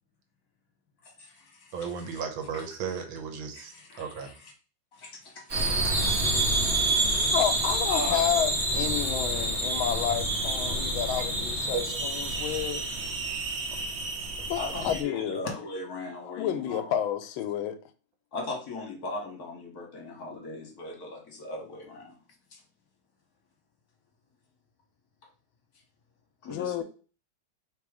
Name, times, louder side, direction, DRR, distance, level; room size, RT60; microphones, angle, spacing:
voice 1, 1.0-1.8 2.1-2.2 2.5-2.6 3.5-4.3 4.9-6.4 7.1-7.3 7.7-8.2 14.6-16.9 18.3-22.2 22.5-22.6 26.4-26.8, left 2 dB, 55° left, 1.5 m, -39 dB
voice 2, 1.7-4.3 11.1-11.2 11.7-12.0, right 6 dB, 80° right, 1.7 m, -35 dB
sound 1, 5.5-15.0, right 2 dB, 40° right, 1.0 m, -28 dB
voice 3, 7.1-12.9 14.4-15.5 16.3-17.8 26.5-26.8, left 10 dB, 85° left, 1.4 m, -30 dB
3.6 x 3.0 x 4.8 m
omnidirectional pair, 2.2 m